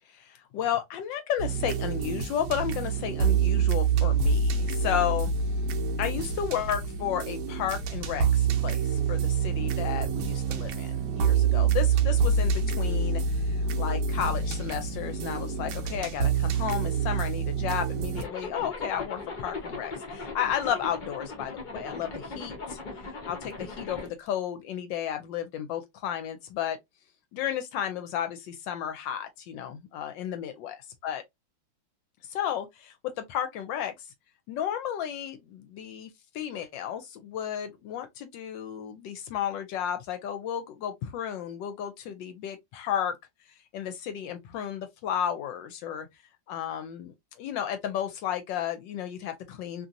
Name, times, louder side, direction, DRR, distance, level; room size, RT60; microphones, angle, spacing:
voice 1, 0.1-5.6 6.0-22.8 23.2-26.8 27.3-31.2 32.2-34.1 34.5-43.2 43.7-46.1 46.5-49.9, left 9 dB, 75° left, 1.2 m, -33 dB
sound 1, 1.4-18.2, right 5 dB, 70° right, 1.1 m, -27 dB
Zipper (clothing), 18.1-24.1, left 3 dB, 60° left, 0.5 m, -38 dB
3.0 x 2.6 x 2.5 m
omnidirectional pair, 2.1 m